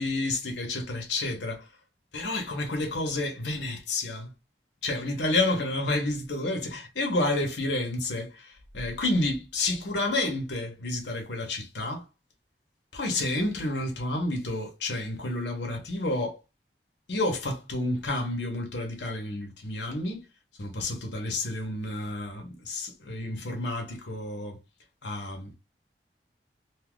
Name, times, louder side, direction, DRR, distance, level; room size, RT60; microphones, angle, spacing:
voice 1, 0.0-1.7 2.1-4.3 4.8-12.1 12.9-16.4 17.1-20.2 20.6-24.6 25.0-25.5, left 2 dB, 80° left, 0.9 m, -30 dB
2.7 x 2.4 x 3.6 m
head